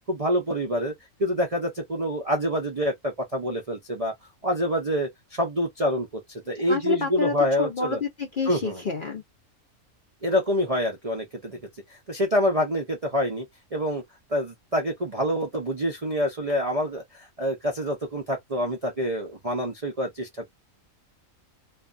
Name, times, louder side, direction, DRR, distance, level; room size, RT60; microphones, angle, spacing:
voice 1, 0.1-0.9 1.2-4.1 4.4-8.0 8.5-8.8 10.2-11.6 12.1-13.5 13.7-14.0 14.3-20.5, equal, 40° right, 0.5 m, -26 dB
voice 2, 6.7-9.2, left 3 dB, 50° left, 0.6 m, -28 dB
2.6 x 2.3 x 2.4 m
omnidirectional pair, 1.5 m